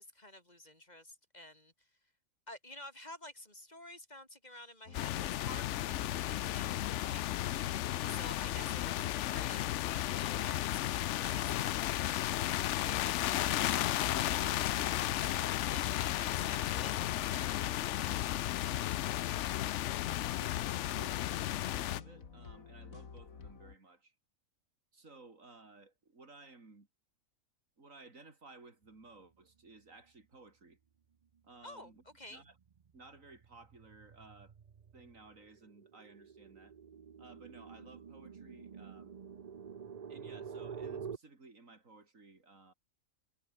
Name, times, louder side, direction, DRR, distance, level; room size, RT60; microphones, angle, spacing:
voice 1, 0.0-1.7 2.5-7.7 8.1-19.0 31.6-32.4, left 1 dB, 30° left, 4.1 m, -51 dB
sound 1, 4.9-23.8, left 5 dB, 85° left, 2.4 m, -51 dB
sound 2, 4.9-22.0, left 14 dB, 70° left, 0.8 m, -34 dB
voice 2, 19.9-24.2 24.9-26.9 27.8-30.8 31.4-32.0 32.3-32.6 32.9-34.6 34.9-36.8 37.2-39.1 40.1-42.7, right 3 dB, 70° right, 3.9 m, -57 dB
sound 3, 31.5-31.8 32.2-41.2, right 7 dB, 40° right, 0.6 m, -48 dB
omnidirectional pair, 1.4 m